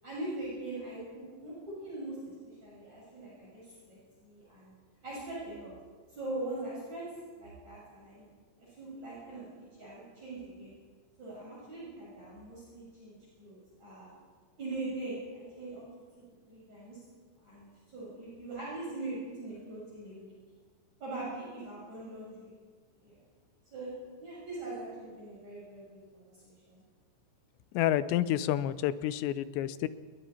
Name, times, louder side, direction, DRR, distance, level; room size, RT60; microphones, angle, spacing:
voice 1, 0.0-4.7 5.0-5.7 6.1-7.0 7.3-8.3 8.6-10.8 11.2-14.1 14.6-15.9 16.5-17.0 17.4-20.3 21.0-22.5 23.0-23.2 23.7-23.9 24.2-26.8, right 2 dB, 40° right, -7 dB, 7.8 m, -42 dB
voice 2, 27.7-29.9, left 12 dB, 80° left, 14 dB, 2.9 m, -29 dB
29.5 x 21.0 x 4.5 m, 1.5 s
omnidirectional pair, 5.2 m